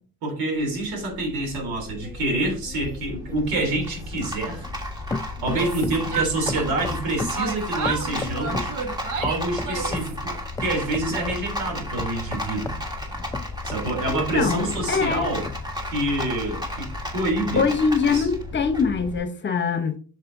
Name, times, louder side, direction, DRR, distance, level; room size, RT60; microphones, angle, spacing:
voice 1, 0.2-4.7 5.4-8.7 9.2-12.7 13.6-15.5 15.9-17.6 18.1-18.3, right 2 dB, 80° right, 3.4 m, -27 dB
Rattle, 0.6-19.2, left 1 dB, 10° right, 1.6 m, -33 dB
sound 1, 1.5-4.8 5.1-6.1 6.5-8.8 9.2-10.2 10.6-11.5 12.0-14.3 14.7-15.7 16.2-16.3, left 3 dB, 10° left, 0.3 m, -35 dB
Yell, 5.4-7.0 7.3-10.2, right 5 dB, 60° right, 1.6 m, -31 dB
voice 2, 14.1-15.3 17.5-20.0, left 5 dB, 30° left, 1.0 m, -23 dB
7.5 x 6.3 x 2.7 m
cardioid pair, 130°, 35 cm